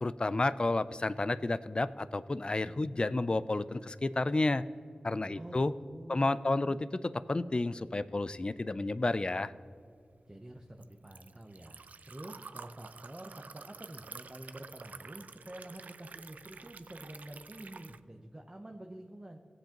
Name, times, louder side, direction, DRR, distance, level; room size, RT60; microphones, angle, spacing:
voice 1, 0.0-4.6 5.0-5.7 6.1-9.5, left 2 dB, 40° left, 14 dB, 0.4 m, -31 dB
voice 2, 5.3-6.8 10.3-19.4, right 1 dB, 25° right, 2 dB, 0.8 m, -48 dB
Liquid, 9.7-18.0, right 5 dB, 90° right, 0.3 m, -50 dB
17.5 x 7.9 x 2.9 m, 2.4 s
wide cardioid pair, 55°, 3 cm